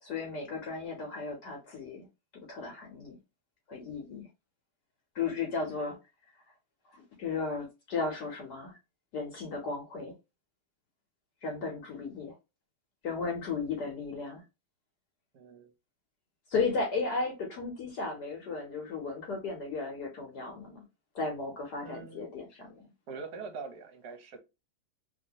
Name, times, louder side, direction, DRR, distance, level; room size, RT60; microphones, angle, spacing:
voice 1, 0.0-2.1 2.5-3.2 3.7-4.3 5.1-6.0 7.2-8.7 9.1-10.1 11.4-12.3 13.0-14.4 16.5-20.8 21.1-22.9, left 4 dB, 60° left, 1.2 m, -35 dB
voice 2, 15.3-15.7 21.8-22.3 23.1-24.4, right 4 dB, 60° right, 1.1 m, -43 dB
3.0 x 2.7 x 2.7 m
omnidirectional pair, 2.3 m